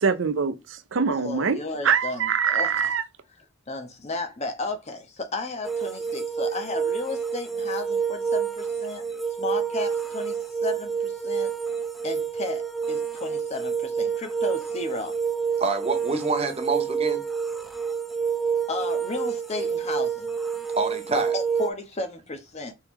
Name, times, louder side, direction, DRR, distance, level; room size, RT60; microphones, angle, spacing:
voice 1, 0.0-1.6 1.8-3.0, right 6 dB, 90° right, 0.5 m, -24 dB
voice 2, 1.1-2.9 3.7-9.0 9.4-11.5 12.0-15.2 18.7-20.3 21.1-22.7, left 3 dB, 35° left, 0.8 m, -34 dB
sound 1, 5.6-21.7, right 6 dB, ahead, 0.4 m, -28 dB
voice 3, 15.6-17.2 20.8-21.3, right 3 dB, 35° right, 0.8 m, -27 dB
4.5 x 2.9 x 3.6 m
head